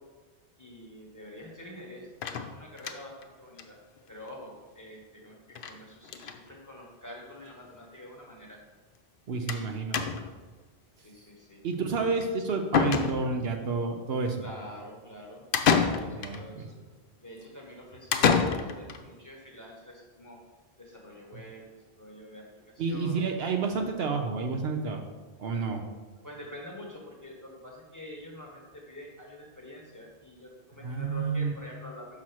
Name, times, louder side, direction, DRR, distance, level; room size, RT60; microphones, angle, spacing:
voice 1, 0.6-3.8 4.1-8.6 9.3-9.7 11.0-11.6 14.4-15.4 15.7-16.8 17.2-20.4 20.8-23.2 26.2-32.2, left 1 dB, 15° left, -2 dB, 1.2 m, -47 dB
sound 1, 2.2-3.2 3.6-3.7 4.0-4.1 4.3-4.4 5.6-5.8 6.0-6.4 7.3-7.4 7.6-7.7 9.5-9.7 9.9-10.4 12.2-12.3 12.7-13.5 15.5-16.4 18.1-19.0, left 6 dB, 60° left, 0.7 m, -27 dB
voice 2, 9.3-10.1 11.6-14.4 16.1-16.7 22.8-25.0 25.4-25.9 30.8-31.5, right 4 dB, 65° right, 4 dB, 0.9 m, -30 dB
5.8 x 4.4 x 6.2 m, 1.3 s
omnidirectional pair, 1.1 m